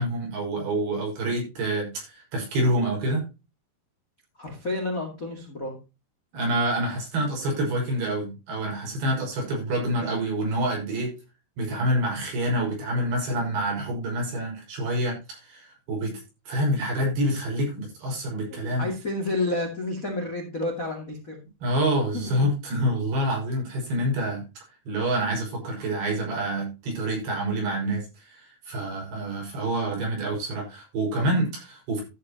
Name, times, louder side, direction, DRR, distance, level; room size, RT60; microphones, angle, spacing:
voice 1, 0.0-3.3 6.3-11.1 11.6-16.1 16.5-18.9 21.6-24.4 24.9-32.0, right 1 dB, 55° right, -1 dB, 7.3 m, -27 dB
voice 2, 4.4-5.8 18.5-21.4 22.1-22.5, left 2 dB, 50° left, 1 dB, 1.0 m, -30 dB
14.0 x 8.4 x 2.9 m, 0.28 s
omnidirectional pair, 5.7 m